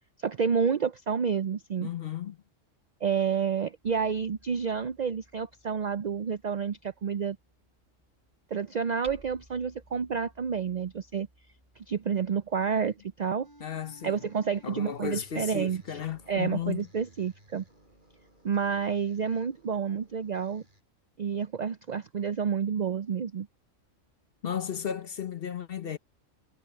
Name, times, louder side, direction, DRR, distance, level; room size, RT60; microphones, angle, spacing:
voice 1, 0.2-1.9 3.0-7.4 8.5-11.3 11.8-13.5 14.0-16.0 16.3-17.6 18.4-20.6 21.2-23.5, right 6 dB, 65° right, 0.4 m, -29 dB
voice 2, 1.8-2.4 13.6-14.2 14.6-16.9 24.4-26.0, left 9 dB, 50° left, 1.0 m, -34 dB
Hammer, 3.8-15.6, equal, 20° right, 6.0 m, -60 dB
sound 1, 13.4-20.8, right 1 dB, 40° right, 7.2 m, -58 dB
omnidirectional pair, 1.4 m